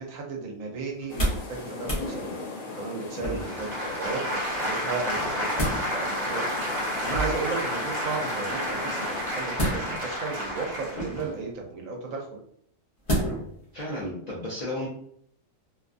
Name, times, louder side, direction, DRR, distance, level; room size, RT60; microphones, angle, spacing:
voice 1, 0.0-12.4, right 4 dB, 80° right, 1 dB, 1.1 m, -35 dB
sound 1, 1.0-1.5 1.8-2.1 3.2-3.7 5.1-5.8 7.0-7.5 9.5-10.2 10.9-11.4 13.1-13.5 14.0-14.1, right 1 dB, 30° left, 0.8 m, -29 dB
sound 2, 1.1-9.4, left 3 dB, 80° left, 1.0 m, -38 dB
sound 3, 3.2-11.2, equal, 60° right, 1.4 m, -31 dB
voice 2, 13.7-14.9, left 1 dB, 50° left, -5 dB, 0.5 m, -33 dB
2.7 x 2.4 x 2.4 m, 0.68 s
omnidirectional pair, 1.4 m